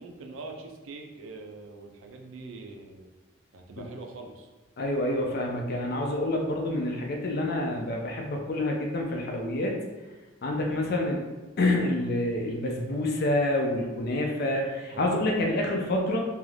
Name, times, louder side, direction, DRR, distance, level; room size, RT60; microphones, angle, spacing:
voice 1, 0.0-3.0 3.5-4.3 10.7-11.0 14.9-15.0, right 3 dB, 70° right, 3 dB, 0.4 m, -43 dB
voice 2, 4.8-9.7 10.4-11.2 11.6-16.2, left 1 dB, 50° left, 1 dB, 0.4 m, -27 dB
2.6 x 2.3 x 3.3 m, 1.2 s
head